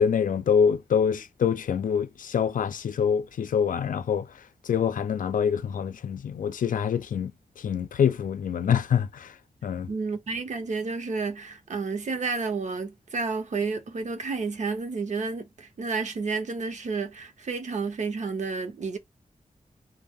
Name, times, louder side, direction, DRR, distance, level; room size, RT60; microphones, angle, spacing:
voice 1, 0.0-4.3 4.7-7.3 7.6-9.3 9.6-9.9, left 7 dB, 85° left, 0.4 m, -25 dB
voice 2, 9.9-19.0, right 4 dB, 60° right, 0.7 m, -31 dB
2.7 x 2.0 x 3.4 m
wide cardioid pair, 140°, 13 cm